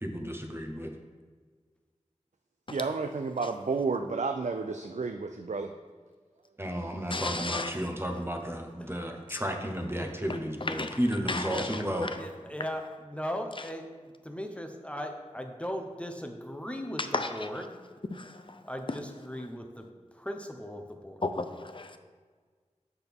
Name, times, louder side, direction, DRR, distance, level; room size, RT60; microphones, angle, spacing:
voice 1, 0.0-0.9 6.6-12.1, equal, 20° right, 0.9 m, -33 dB
voice 2, 2.7-5.7 7.0-7.1, right 4 dB, 70° right, 0.4 m, -31 dB
voice 3, 7.1-7.8 9.3-9.4 10.6-11.0 11.3-12.2 17.1-17.5 18.1-18.6 18.9-19.0 21.2-22.0, left 2 dB, 40° left, 0.6 m, -34 dB
voice 4, 12.2-17.7 18.7-19.9 20.1-21.2, equal, 10° left, 0.8 m, -38 dB
8.0 x 6.1 x 3.5 m
wide cardioid pair, 50°, 13 cm